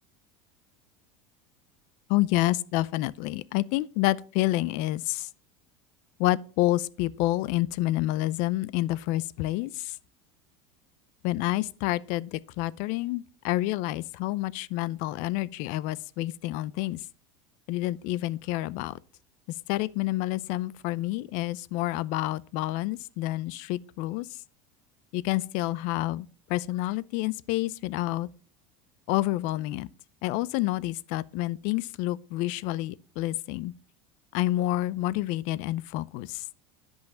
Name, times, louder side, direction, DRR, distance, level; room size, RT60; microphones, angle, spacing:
voice 1, 2.1-5.3 6.2-9.9 11.2-17.0 17.7-18.9 19.7-24.3 25.1-28.3 29.1-29.9 30.2-33.7 34.3-36.4, left 17 dB, 60° left, 0.5 m, -28 dB
10.5 x 5.6 x 5.6 m
supercardioid pair, 125°, 15 cm